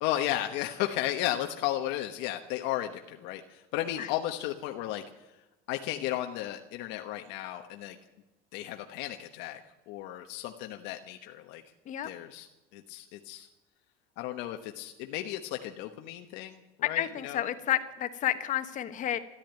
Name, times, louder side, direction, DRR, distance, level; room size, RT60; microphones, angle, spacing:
voice 1, 0.0-5.3 5.7-8.0 8.5-9.6 9.9-11.6 12.0-13.5 14.2-17.4, left 13 dB, 70° left, 5 dB, 1.2 m, -34 dB
voice 2, 16.9-19.2, left 11 dB, 45° left, 11 dB, 1.3 m, -31 dB
14.0 x 11.5 x 9.1 m, 1.0 s
cardioid pair, 135°, 19 cm